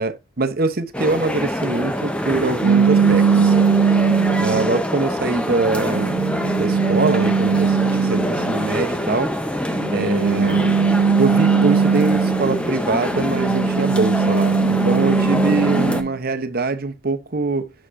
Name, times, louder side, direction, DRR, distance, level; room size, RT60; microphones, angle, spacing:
voice 1, 0.0-3.6 4.4-6.1 6.6-9.3 9.9-10.8 11.2-17.7, right 3 dB, 45° right, 0.8 m, -23 dB
sound 1, 0.9-16.0, equal, 5° left, 0.6 m, -24 dB
sound 2, 2.6-4.8 5.4-8.6 9.7-12.7 13.1-16.1, right 6 dB, 85° right, 0.4 m, -19 dB
6.6 x 6.2 x 2.6 m
head